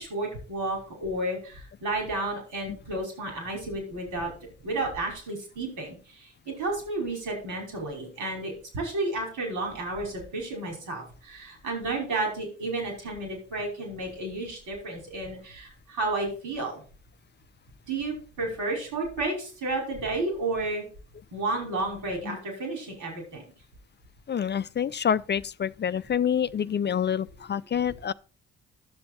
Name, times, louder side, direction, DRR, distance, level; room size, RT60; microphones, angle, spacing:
voice 1, 0.0-4.3 4.6-16.8 17.9-20.8 21.3-23.4, right 2 dB, 80° right, 5.2 m, -32 dB
voice 2, 24.3-28.1, left 8 dB, 35° left, 0.5 m, -27 dB
10.5 x 7.0 x 4.3 m
hypercardioid pair, 45°, 30 cm